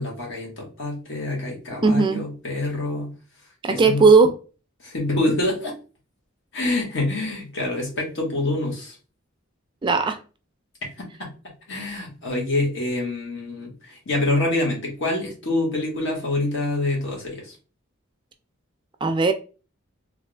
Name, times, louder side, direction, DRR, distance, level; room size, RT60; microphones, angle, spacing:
voice 1, 0.0-3.1 3.7-4.1 4.8-5.8 6.5-9.0 11.0-11.3 11.7-17.6, left 2 dB, 65° left, -1 dB, 1.5 m, -26 dB
voice 2, 1.8-2.2 3.6-4.4 9.8-10.2 19.0-19.3, right 4 dB, 25° right, 7 dB, 0.4 m, -17 dB
3.4 x 2.5 x 3.2 m, 0.34 s
head